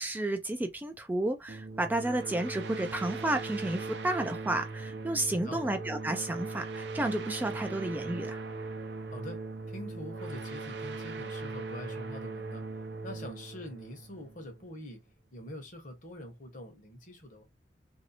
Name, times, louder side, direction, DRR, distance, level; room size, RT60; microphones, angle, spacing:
voice 1, 0.0-8.4, right 1 dB, 10° right, 0.3 m, -32 dB
sound 1, 1.5-14.8, right 3 dB, 70° right, 0.5 m, -39 dB
voice 2, 5.3-5.7 9.1-12.6 13.0-15.0 15.3-17.4, left 1 dB, 50° left, 1.0 m, -44 dB
3.0 x 2.7 x 2.8 m
head